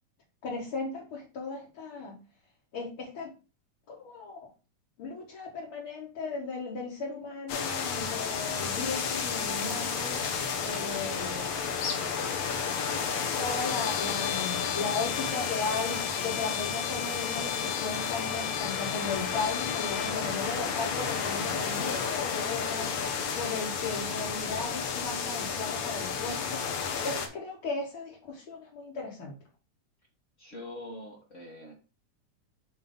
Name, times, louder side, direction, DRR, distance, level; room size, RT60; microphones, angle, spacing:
voice 1, 0.4-2.2 2.7-3.3 3.9-4.4 5.0-10.2 10.6-11.5 13.4-26.6 27.0-29.3, left 4 dB, 50° left, -4 dB, 2.2 m, -36 dB
sound 1, 7.5-27.3, left 6 dB, 70° left, 2.4 m, -32 dB
Trumpet, 13.7-20.2, left 12 dB, 90° left, 1.4 m, -37 dB
voice 2, 30.4-31.7, left 1 dB, 30° left, -2 dB, 1.6 m, -43 dB
7.6 x 3.2 x 5.5 m, 0.32 s
omnidirectional pair, 3.5 m